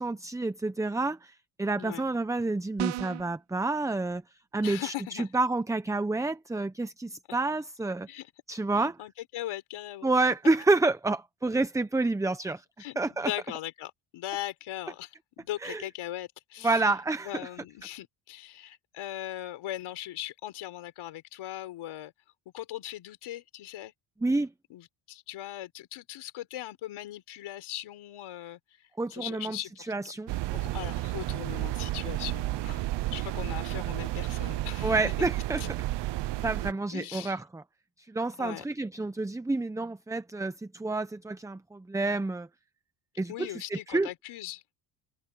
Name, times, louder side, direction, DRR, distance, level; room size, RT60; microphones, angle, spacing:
voice 1, 0.0-4.2 4.5-8.1 8.5-8.9 10.0-12.6 13.0-13.3 15.6-15.8 16.6-17.3 24.2-24.5 29.0-29.6 29.9-30.3 34.8-35.6 36.4-37.6 38.1-42.5 43.2-44.1, right 3 dB, 5° right, 0.7 m, -29 dB
sound 1, 2.8-3.3, right 14 dB, 85° right, 1.9 m, -33 dB
voice 2, 4.6-5.3 7.3-7.4 8.1-8.3 8.8-10.1 12.8-16.8 17.2-22.1 22.5-23.9 24.7-29.9 30.5-35.0 35.6-35.7 36.9-37.4 38.4-38.6 43.3-44.7, left 13 dB, 75° left, 4.3 m, -39 dB
sound 2, 30.3-36.7, right 16 dB, 55° right, 0.7 m, -32 dB
open air
cardioid pair, 110°, 49 cm